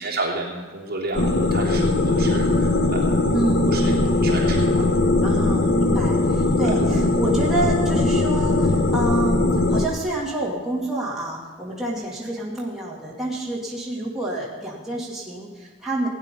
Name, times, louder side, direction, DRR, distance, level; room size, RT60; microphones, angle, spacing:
voice 1, 0.0-3.2 3.7-4.9 5.3-5.4 6.6-6.7, right 2 dB, 50° right, -4 dB, 3.1 m, -31 dB
sound 1, 1.1-9.9, left 2 dB, 50° left, 1.0 m, -20 dB
voice 2, 5.2-16.1, right 1 dB, ahead, -6 dB, 2.4 m, -28 dB
17.0 x 9.6 x 5.4 m, 1.4 s
head